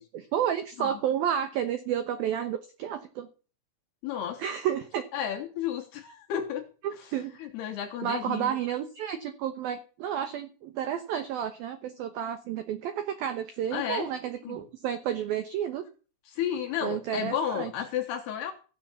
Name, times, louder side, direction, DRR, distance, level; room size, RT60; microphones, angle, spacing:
voice 1, 0.1-3.3 4.4-5.1 6.8-7.3 8.0-15.8 16.8-17.7, right 9 dB, 90° right, 9 dB, 2.0 m, -31 dB
voice 2, 4.0-4.4 5.1-6.7 7.0-7.1 7.4-8.6 13.7-14.1 14.4-14.6 16.3-18.5, left 9 dB, 70° left, 4 dB, 2.6 m, -32 dB
15.5 x 7.8 x 7.0 m, 0.36 s
omnidirectional pair, 5.9 m